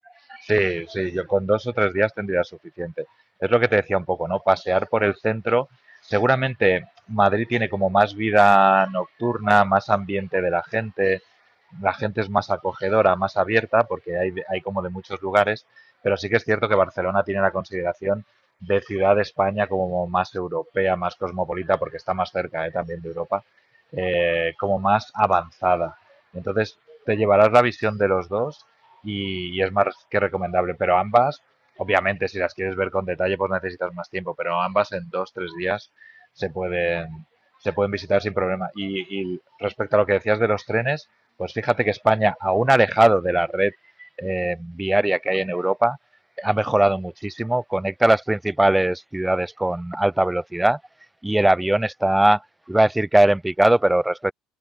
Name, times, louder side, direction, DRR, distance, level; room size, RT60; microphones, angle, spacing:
voice 1, 0.3-2.5 2.8-3.1 3.4-5.7 6.1-11.2 11.7-15.6 16.0-18.2 18.6-23.4 23.9-26.0 26.3-28.6 29.0-31.4 31.8-35.9 36.4-37.2 37.6-41.0 41.4-43.7 44.0-46.0 46.4-50.8 51.2-52.4 52.7-54.3, right 1 dB, 5° right, 0.7 m, -21 dB
open air
supercardioid pair, 115°, 0 cm